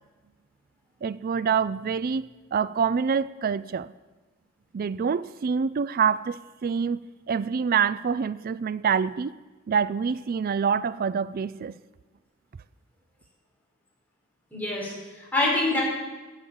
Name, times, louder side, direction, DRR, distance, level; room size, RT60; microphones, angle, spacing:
voice 1, 1.0-3.9 4.7-7.0 7.3-9.3 9.7-11.7, right 6 dB, 45° right, 17 dB, 0.4 m, -26 dB
voice 2, 14.5-15.8, left 2 dB, 10° left, -4 dB, 5.3 m, -26 dB
15.5 x 8.4 x 7.2 m, 1.2 s
head